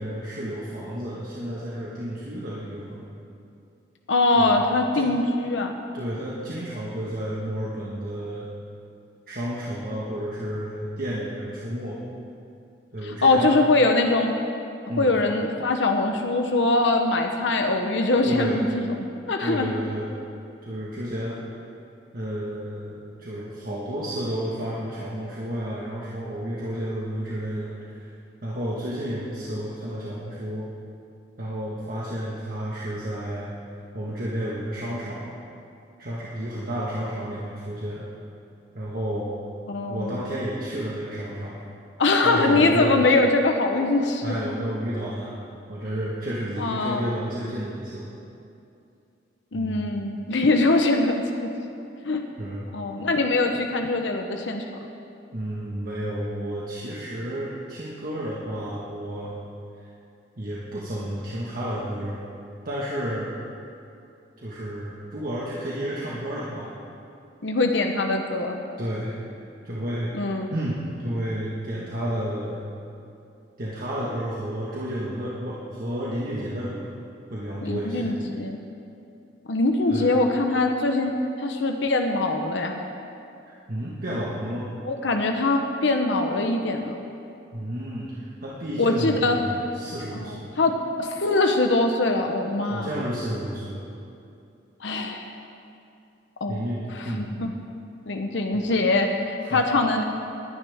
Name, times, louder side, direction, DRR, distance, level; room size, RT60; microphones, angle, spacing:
voice 1, 0.0-3.1 4.3-4.6 4.9-5.1 5.9-8.5 9.3-12.0 12.9-13.6 14.9-15.2 18.2-18.7 19.4-20.1 20.6-21.4 22.1-28.1 28.4-30.7 31.4-33.5 33.9-35.3 36.0-38.1 38.7-39.3 39.9-41.6 42.2-42.9 44.2-45.4 45.7-48.1 49.5-49.8 52.4-52.7 55.3-59.4 59.8-59.9 60.4-62.2 62.6-63.3 64.4-66.7 68.8-69.1 69.6-70.1 70.5-72.6 73.6-76.9 77.3-78.1 79.9-80.1 83.5-84.7 87.5-90.5 92.6-93.8 96.5-97.3 98.5-98.6 99.4-99.6, equal, 50° right, -6 dB, 1.5 m, -31 dB
voice 2, 4.1-5.7 13.0-14.3 15.0-18.9 19.3-19.7 39.7-40.1 42.0-44.2 46.6-47.2 49.5-51.2 52.0-52.2 52.7-54.7 67.4-68.5 70.1-70.5 77.6-78.6 79.5-82.8 84.8-87.0 88.8-89.4 90.1-90.7 91.0-92.9 94.8-95.3 96.4-96.6 97.0-97.5 98.1-100.0, left 2 dB, 85° left, 4 dB, 0.9 m, -22 dB
20.0 x 10.5 x 3.6 m, 2.6 s
head